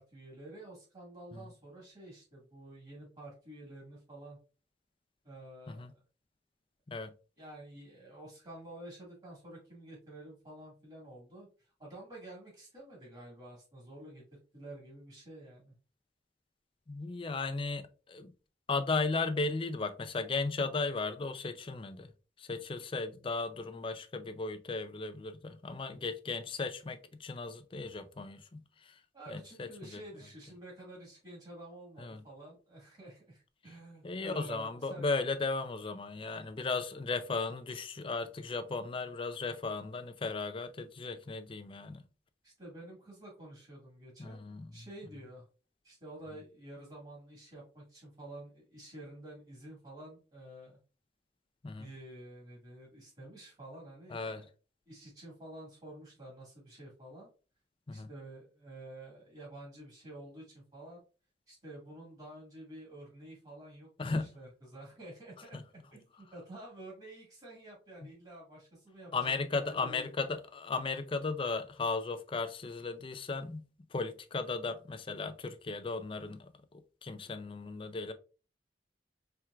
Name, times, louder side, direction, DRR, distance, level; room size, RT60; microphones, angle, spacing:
voice 1, 0.0-4.4 5.2-5.9 7.4-15.7 29.1-35.1 42.4-44.5 44.7-45.4 45.8-50.8 51.8-54.5 54.9-57.3 57.9-61.0 61.5-65.6 65.9-70.1, right 1 dB, 35° right, 1.8 m, -50 dB
voice 2, 16.9-18.3 18.7-22.1 22.4-29.0 29.3-30.0 32.0-32.2 34.0-42.0 44.2-44.9 51.6-51.9 54.1-54.4 57.9-58.1 64.0-64.3 65.5-65.6 69.1-73.6 73.9-78.1, left 3 dB, 30° left, 0.4 m, -36 dB
4.5 x 3.4 x 2.4 m
head